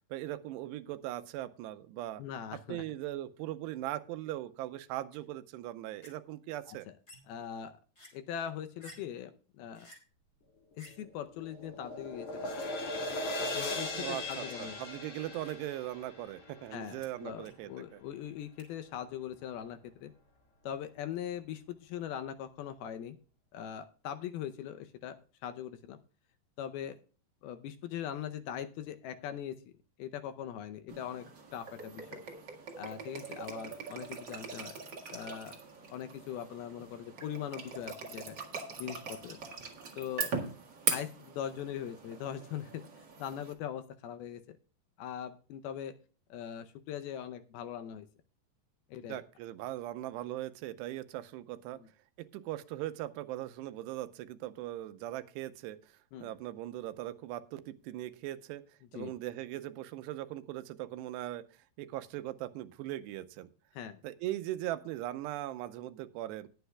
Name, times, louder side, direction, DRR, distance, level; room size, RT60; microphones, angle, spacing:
voice 1, 0.1-2.2 2.5-6.9 13.9-18.0 49.1-51.8 52.2-61.4 61.8-63.5 64.0-66.5, right 14 dB, 85° right, 12 dB, 2.8 m, -40 dB
voice 2, 2.2-2.8 6.7-6.9 7.3-7.8 8.1-9.9 10.8-12.6 13.5-14.8 16.7-20.1 20.6-23.2 23.5-25.2 25.4-26.0 26.6-27.0 27.4-29.7 30.0-31.3 31.5-32.2 32.8-34.8 35.1-35.6 35.9-38.4 38.8-39.4 40.0-40.3 40.9-42.8 43.2-44.4 45.0-45.9 46.3-48.1 48.9-49.2 51.7-51.9 56.1-56.3 58.9-59.1 63.7-64.0, left 9 dB, 75° left, 9 dB, 2.4 m, -41 dB
sound 1, 5.1-5.2 6.0-6.1 7.1-7.4 8.0-8.1 8.8-9.2 9.7-10.0 10.8-11.1 12.5-12.7 13.8-14.2 15.2-15.8 16.7-16.8 17.0-17.1 17.4-17.7 18.6-18.7, equal, 15° left, 3.3 m, -56 dB
sound 2, 10.9-17.2, left 2 dB, 40° left, 3.1 m, -39 dB
sound 3, 30.9-43.5, right 5 dB, 45° right, 1.6 m, -41 dB
20.0 x 8.0 x 2.3 m, 0.37 s
omnidirectional pair, 4.8 m